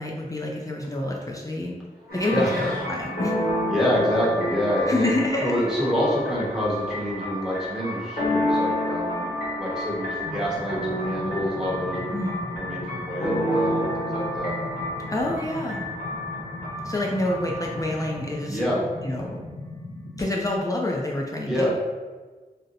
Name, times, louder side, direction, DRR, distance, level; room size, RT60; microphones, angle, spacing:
voice 1, 0.0-1.7 2.1-3.3 4.9-5.5 12.1-12.4 15.1-15.8 16.8-18.6 19.0-19.4 20.2-21.8, left 1 dB, 20° left, -2 dB, 0.4 m, -27 dB
Meow, 1.9-2.9, right 1 dB, 70° right, 0.8 m, -37 dB
sound 1, 2.1-18.2, left 1 dB, 60° left, 1.3 m, -30 dB
voice 2, 3.7-5.1 5.4-9.3 9.6-12.2 12.5-14.5 18.5-18.8 21.4-21.7, equal, 5° right, -6 dB, 1.0 m, -26 dB
sound 2, 10.2-20.2, left 1 dB, 75° left, 0.6 m, -38 dB
2.7 x 2.1 x 3.8 m, 1.4 s
wide cardioid pair, 80°, 16 cm